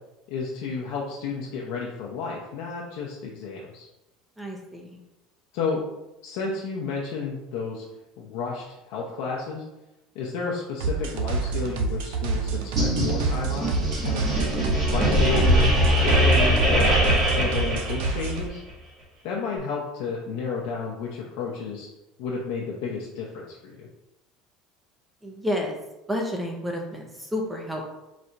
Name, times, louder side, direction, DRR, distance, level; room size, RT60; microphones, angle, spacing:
voice 1, 0.3-3.9 5.5-5.8 6.2-7.8 8.2-9.6 10.1-14.2 14.8-16.9 17.2-18.6 19.2-21.9 22.2-23.9, left 5 dB, 70° left, -3 dB, 0.7 m, -32 dB
voice 2, 4.4-5.0 25.2-25.8 26.1-27.9, left 1 dB, 5° right, 1 dB, 0.6 m, -30 dB
sound 1, 10.8-18.5, right 4 dB, 90° right, 0.6 m, -28 dB
sound 2, 12.8-18.4, equal, 30° right, 1.3 m, -22 dB
4.1 x 2.5 x 4.4 m, 0.96 s
cardioid pair, 160°, 0 cm